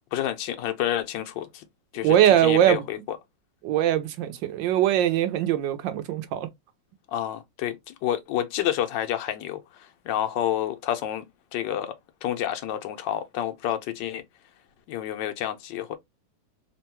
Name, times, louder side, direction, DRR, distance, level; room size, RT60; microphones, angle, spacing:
voice 1, 0.1-1.6 1.9-2.2 2.4-3.2 7.1-11.2 11.5-11.9 12.2-14.2 14.9-16.0, left 11 dB, 85° left, 1.3 m, -29 dB
voice 2, 2.0-2.8 3.6-6.5, right 11 dB, 90° right, 1.4 m, -21 dB
3.6 x 2.2 x 2.9 m
omnidirectional pair, 1.9 m